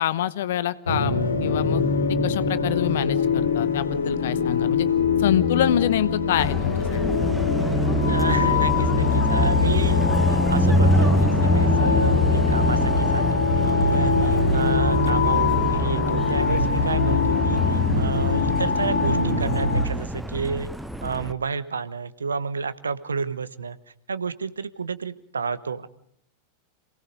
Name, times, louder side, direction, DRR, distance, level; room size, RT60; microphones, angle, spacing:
voice 1, 0.0-1.8 2.2-4.9 5.2-7.0, left 11 dB, 55° left, 16 dB, 1.0 m, -26 dB
sound 1, 0.9-19.9, left 4 dB, 70° left, 2.2 m, -22 dB
Car passing by, 6.4-21.3, left 1 dB, ahead, 1.0 m, -26 dB
voice 2, 8.0-10.0 10.3-20.7 21.0-23.8 24.1-25.9, right 5 dB, 75° right, 14 dB, 1.1 m, -30 dB
27.5 x 18.0 x 5.3 m, 0.69 s
figure-of-eight pair, 90°, 0 cm